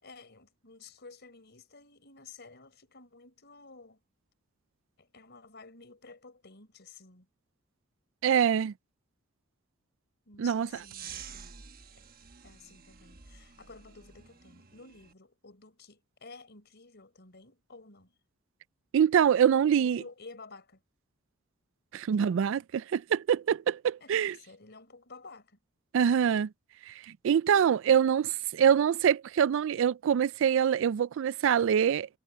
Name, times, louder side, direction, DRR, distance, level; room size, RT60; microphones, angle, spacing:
voice 1, 0.0-4.0 5.0-7.3 10.3-11.6 12.4-18.1 19.6-20.8 22.1-22.6 24.0-25.6, left 3 dB, 55° left, 4.9 m, -52 dB
voice 2, 8.2-8.7 10.4-10.7 18.9-20.0 21.9-24.3 25.9-26.5 26.9-27.0 27.2-32.1, right 8 dB, 65° right, 0.3 m, -25 dB
sound 1, 10.7-15.1, right 7 dB, 45° right, 1.2 m, -49 dB
head